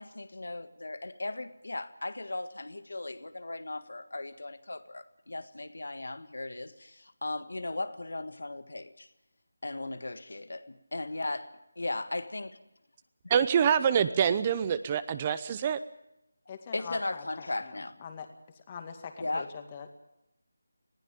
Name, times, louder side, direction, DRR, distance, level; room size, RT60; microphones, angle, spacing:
voice 1, 0.0-9.1 9.6-12.6 16.7-17.9 19.2-19.5, left 2 dB, 80° left, 1.7 m, -37 dB
voice 2, 13.3-15.8, right 8 dB, 20° right, 0.7 m, -25 dB
voice 3, 16.5-18.3 18.5-19.9, left 6 dB, 25° left, 2.1 m, -43 dB
20.0 x 15.5 x 8.9 m
figure-of-eight pair, 170°, 0 cm